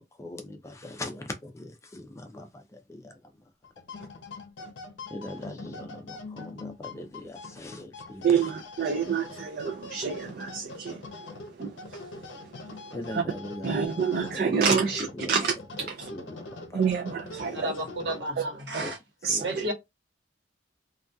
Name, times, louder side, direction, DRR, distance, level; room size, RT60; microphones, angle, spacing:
voice 1, 0.0-3.4 4.0-4.1 5.1-8.5 12.9-14.6 15.0-15.4 15.8-16.8 17.4-17.6 18.8-18.9 19.2-19.6, left 1 dB, 15° left, 0.4 m, -41 dB
sound 1, 3.6-18.6, left 3 dB, 85° left, 0.6 m, -43 dB
voice 2, 8.2-11.0 11.6-12.3 13.6-15.5 16.0-16.1 16.7-17.7 18.1-18.2 19.2-19.7, right 6 dB, 55° right, 0.4 m, -28 dB
voice 3, 17.5-19.0 19.4-19.7, equal, 75° right, 1.1 m, -32 dB
2.6 x 2.3 x 2.2 m
head